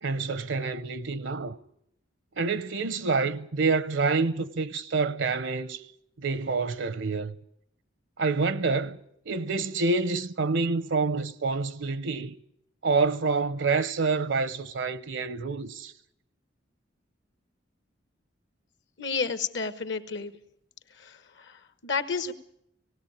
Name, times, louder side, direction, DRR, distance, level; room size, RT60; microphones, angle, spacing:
voice 1, 0.0-1.6 2.4-5.8 6.2-7.4 8.2-9.0 9.3-12.3 12.8-15.9, right 4 dB, 80° right, 0.7 m, -27 dB
voice 2, 19.0-20.3 21.0-22.3, left 5 dB, 70° left, 1.2 m, -31 dB
18.5 x 16.5 x 8.7 m
head